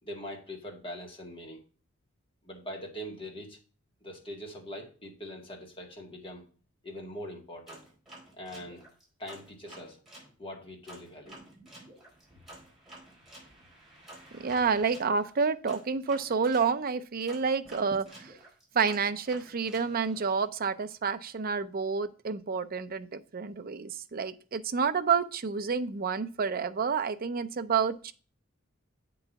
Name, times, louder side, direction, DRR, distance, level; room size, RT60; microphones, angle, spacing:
voice 1, 0.0-1.6 2.4-3.6 4.0-6.4 6.8-7.8 8.3-8.8 9.2-10.0 10.4-11.4, equal, 25° left, 0 dB, 2.0 m, -42 dB
sound 1, 7.7-10.3 10.9-16.7 17.3-20.5, right 1 dB, ahead, 4.4 m, -51 dB
voice 2, 14.3-18.4 18.7-28.1, right 5 dB, 45° right, 10 dB, 0.5 m, -29 dB
8.2 x 3.9 x 5.7 m, 0.37 s
head